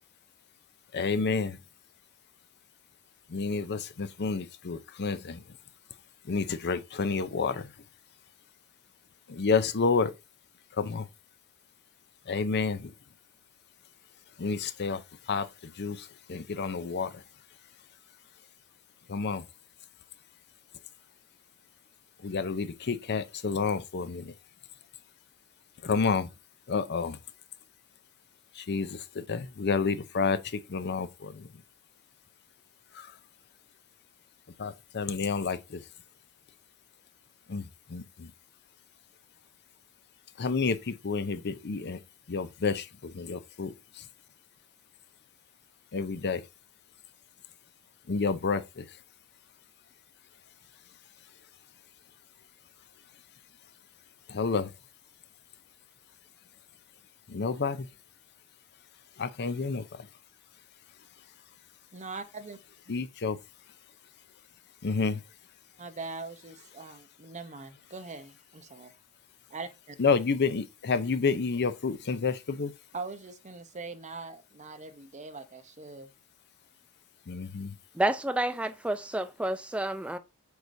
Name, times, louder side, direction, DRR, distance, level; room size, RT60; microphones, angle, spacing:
voice 1, 0.9-1.6 3.3-5.4 6.2-7.7 9.3-10.1 10.8-11.1 12.3-12.9 14.4-17.2 19.1-19.4 22.2-24.3 25.8-26.3 26.7-27.2 28.5-31.5 32.9-33.1 34.6-35.8 37.5-38.3 40.4-42.0 42.3-44.0 45.9-46.4 48.1-48.9 54.3-54.7 57.3-57.9 59.2-60.1 62.9-63.4 64.8-65.2 70.0-72.7 77.3-77.7, left 4 dB, 50° left, 0.6 m, -30 dB
voice 2, 61.9-62.6 65.8-68.9 69.5-70.0 72.9-76.1, right 3 dB, 35° right, 0.8 m, -42 dB
voice 3, 77.9-80.2, right 1 dB, 5° right, 0.4 m, -29 dB
8.1 x 4.8 x 2.7 m
head